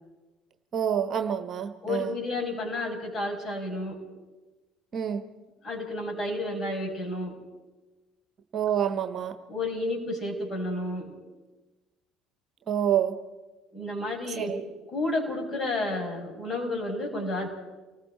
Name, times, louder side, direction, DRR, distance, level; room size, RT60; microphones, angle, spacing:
voice 1, 0.7-2.1 4.9-5.2 8.5-9.3 12.7-13.1 14.4-14.6, right 9 dB, 40° right, 9 dB, 1.3 m, -27 dB
voice 2, 1.8-4.0 5.6-7.3 9.5-11.1 13.7-14.5 14.9-17.5, left 2 dB, 35° left, 2 dB, 6.4 m, -31 dB
29.5 x 20.0 x 4.4 m, 1.2 s
figure-of-eight pair, 60°, 0 cm